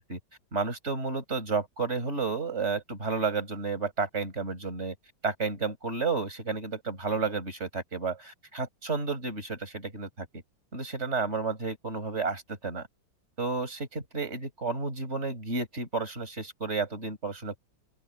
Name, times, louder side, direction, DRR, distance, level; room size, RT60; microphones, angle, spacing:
voice 1, 0.5-5.0 5.2-10.3 10.7-12.9 13.4-17.6, right 4 dB, 35° right, 5.7 m, -31 dB
open air
omnidirectional pair, 2.2 m